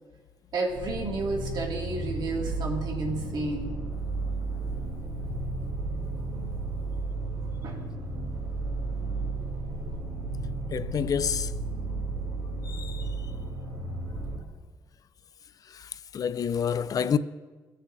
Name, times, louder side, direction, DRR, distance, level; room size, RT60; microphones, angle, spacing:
voice 1, 0.5-3.8 7.6-7.9, right 2 dB, 60° right, 1.7 m, -31 dB
sound 1, 0.7-14.4, right 3 dB, 80° right, 2.7 m, -33 dB
voice 2, 10.7-11.5 12.6-13.3 15.6-17.2, left 7 dB, 50° left, 0.3 m, -29 dB
16.5 x 6.5 x 2.5 m
cardioid pair, 100°, 8 cm